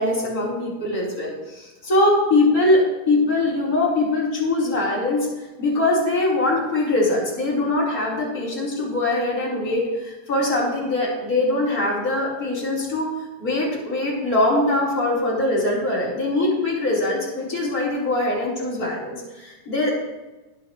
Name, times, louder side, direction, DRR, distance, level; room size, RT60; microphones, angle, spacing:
voice 1, 0.0-5.3 5.6-13.1 13.4-19.9, left 2 dB, 25° left, -6 dB, 4.7 m, -22 dB
21.5 x 7.6 x 3.3 m, 1.1 s
omnidirectional pair, 4.1 m